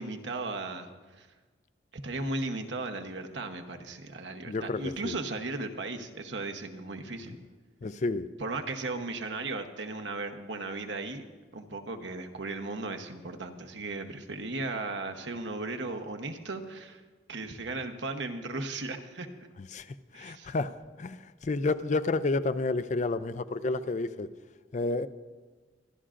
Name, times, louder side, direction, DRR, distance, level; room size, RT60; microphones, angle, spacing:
voice 1, 0.0-1.3 1.9-7.4 8.4-11.2 11.5-17.0 17.3-19.3 20.1-20.5, right 2 dB, 85° right, 5 dB, 1.0 m, -36 dB
voice 2, 4.5-5.1 7.8-8.3 19.7-19.9 20.1-20.7 21.0-24.3 24.7-25.1, left 3 dB, 40° left, 13 dB, 0.4 m, -30 dB
24.5 x 11.0 x 2.5 m, 1.4 s
head